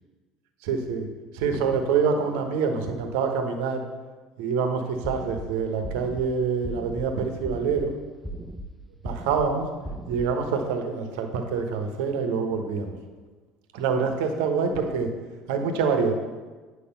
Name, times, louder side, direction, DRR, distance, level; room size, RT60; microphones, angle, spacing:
voice 1, 0.6-1.1 1.3-3.8 4.4-7.9 9.0-9.7 10.1-12.9 13.7-15.1 15.5-16.1, right 5 dB, 60° right, 5 dB, 1.0 m, -26 dB
sound 1, 5.0-5.5 5.8-6.3 6.6-7.1 7.4-7.9 8.2-8.7 9.0-9.5 9.8-10.3, right 1 dB, 5° right, 0.7 m, -36 dB
8.6 x 4.8 x 6.8 m, 1.3 s
figure-of-eight pair, 65°, 0 cm